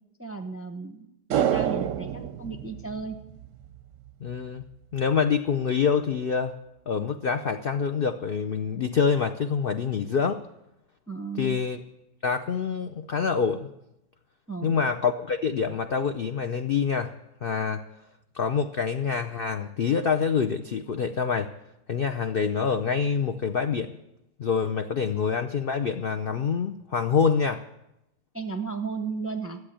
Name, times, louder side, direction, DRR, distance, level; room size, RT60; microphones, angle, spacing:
voice 1, 0.2-3.2 11.1-11.6 14.5-14.8 28.3-29.6, right 4 dB, 15° right, 5 dB, 0.5 m, -35 dB
sound 1, 1.3-3.8 4.1-4.2, right 10 dB, 65° right, 0.8 m, -28 dB
voice 2, 4.2-4.6 4.9-6.5 6.9-10.4 11.4-11.8 12.2-13.7 14.6-17.1 17.4-17.8 18.3-21.5 21.9-23.9 24.4-27.6, left 6 dB, 80° left, 7 dB, 0.5 m, -26 dB
13.0 x 8.0 x 10.0 m, 0.88 s
omnidirectional pair, 1.8 m